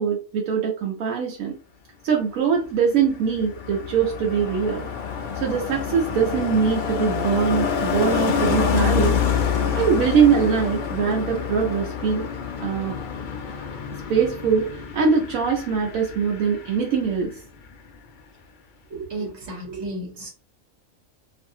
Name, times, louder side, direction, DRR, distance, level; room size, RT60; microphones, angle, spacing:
voice 1, 0.0-1.6 2.0-4.9 5.3-9.1 9.7-12.2 12.6-13.0 14.1-17.3, right 6 dB, 85° right, -1 dB, 1.0 m, -22 dB
Car passing by, 2.6-17.4 17.6-18.0, left 7 dB, 75° left, 0.4 m, -27 dB
voice 2, 18.9-20.3, right 2 dB, 55° right, 0 dB, 1.1 m, -33 dB
2.7 x 2.5 x 2.6 m, 0.38 s
omnidirectional pair, 1.4 m